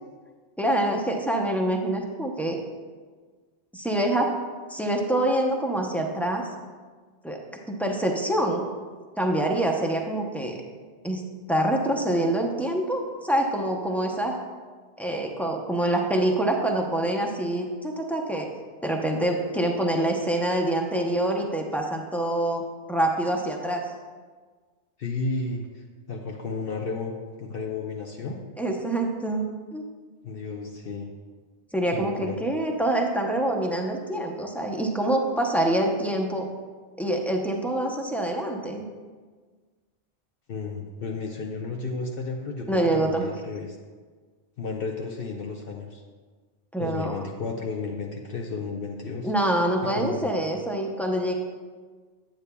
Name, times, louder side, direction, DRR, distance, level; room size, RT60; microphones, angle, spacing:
voice 1, 0.6-2.6 3.7-4.3 4.7-6.5 7.2-7.4 7.7-8.7 9.2-10.6 11.0-11.2 11.5-14.4 15.0-18.5 18.8-22.6 22.9-23.9 28.6-29.8 31.7-36.5 37.0-38.9 42.7-43.2 46.7-47.2 49.2-51.3, right 1 dB, ahead, 0 dB, 0.4 m, -25 dB
voice 2, 25.0-28.4 30.2-31.1 31.9-32.4 40.5-43.8 44.6-46.0 46.8-49.3 49.9-50.3, left 4 dB, 60° left, 0 dB, 0.8 m, -33 dB
10.0 x 8.2 x 2.2 m, 1.5 s
omnidirectional pair, 1.2 m